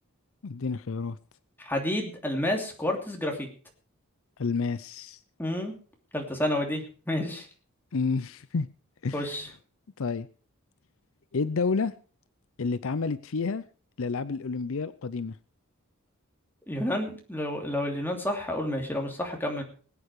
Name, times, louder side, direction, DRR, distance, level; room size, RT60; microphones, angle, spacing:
voice 1, 0.4-1.2 4.4-5.2 7.9-8.7 9.0-9.4 10.0-10.3 11.3-11.9 12.6-13.6 14.0-15.4, left 4 dB, 65° left, 0.6 m, -29 dB
voice 2, 1.6-3.5 5.4-5.7 6.1-7.5 9.1-9.5 16.7-19.6, left 1 dB, 10° left, 2.9 m, -30 dB
20.0 x 8.8 x 4.8 m
head